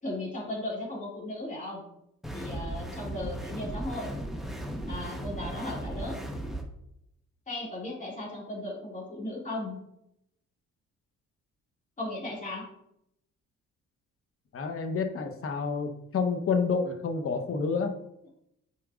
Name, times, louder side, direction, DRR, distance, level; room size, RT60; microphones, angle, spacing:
voice 1, 0.0-1.8 2.3-4.1 4.9-6.2 7.5-9.7 12.0-12.6, left 1 dB, 25° left, -4 dB, 2.3 m, -36 dB
sound 1, 2.2-6.6, right 1 dB, ahead, 1.0 m, -36 dB
voice 2, 14.5-17.9, left 5 dB, 45° left, 6 dB, 0.9 m, -29 dB
8.9 x 4.5 x 2.4 m, 0.80 s
cardioid pair, 90°, 30 cm